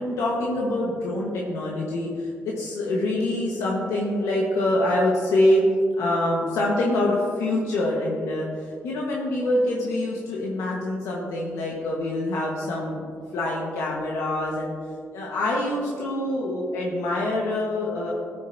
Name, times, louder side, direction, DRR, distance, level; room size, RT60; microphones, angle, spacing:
voice 1, 0.0-14.7 15.1-18.1, left 1 dB, 85° left, -3 dB, 1.3 m, -25 dB
13.5 x 9.3 x 2.7 m, 2.2 s
cardioid pair, 70°, 5 cm